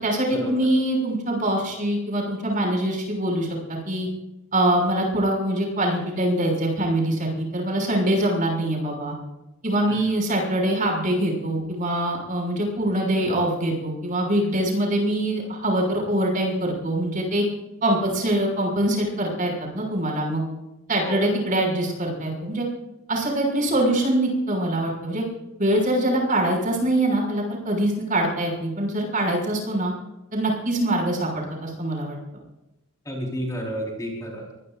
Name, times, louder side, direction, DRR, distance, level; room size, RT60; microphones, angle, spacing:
voice 1, 0.0-4.1 4.5-9.1 9.6-17.4 17.8-20.4 20.9-22.7 23.1-25.2 25.6-29.9 30.3-32.2, right 1 dB, 35° right, 0 dB, 6.2 m, -24 dB
voice 2, 33.0-34.4, equal, 15° left, -2 dB, 4.4 m, -30 dB
24.0 x 20.5 x 2.6 m, 0.94 s
head